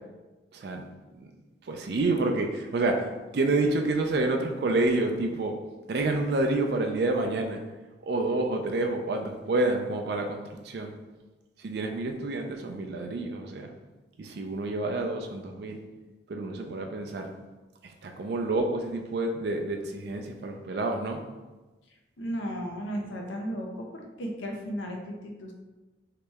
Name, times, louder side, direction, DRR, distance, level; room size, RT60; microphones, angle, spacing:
voice 1, 0.5-0.8 1.2-1.3 1.6-5.5 5.9-7.6 8.0-10.9 11.6-13.7 14.2-15.8 16.3-17.3 17.8-21.2, right 2 dB, 55° right, 3 dB, 0.4 m, -28 dB
voice 2, 22.2-25.5, equal, 80° left, 1 dB, 0.6 m, -35 dB
3.1 x 2.8 x 3.4 m, 1.2 s
head